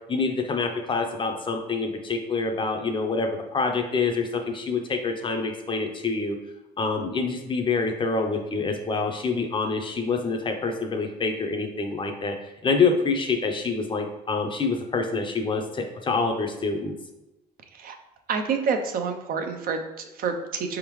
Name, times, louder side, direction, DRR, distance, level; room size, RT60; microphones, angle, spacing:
voice 1, 0.1-6.4 6.8-12.3 12.6-17.0, left 4 dB, 30° left, 4 dB, 0.6 m, -26 dB
voice 2, 18.3-20.8, right 5 dB, 60° right, 5 dB, 0.6 m, -28 dB
4.7 x 3.5 x 3.1 m, 1.0 s
cardioid pair, 110°, 17 cm